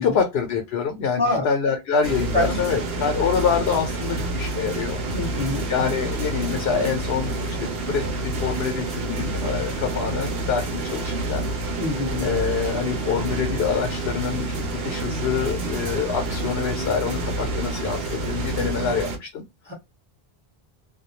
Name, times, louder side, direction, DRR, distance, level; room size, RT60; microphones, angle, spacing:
voice 1, 0.0-5.0 5.7-11.5 12.2-19.4, left 6 dB, 80° left, 0.8 m, -26 dB
voice 2, 1.2-1.5 2.3-2.6 5.1-5.7 11.8-12.3 19.7-19.8, left 2 dB, 10° left, 0.9 m, -25 dB
sound 1, 2.0-19.2, right 2 dB, 70° right, 0.9 m, -28 dB
2.3 x 2.1 x 2.8 m
omnidirectional pair, 1.0 m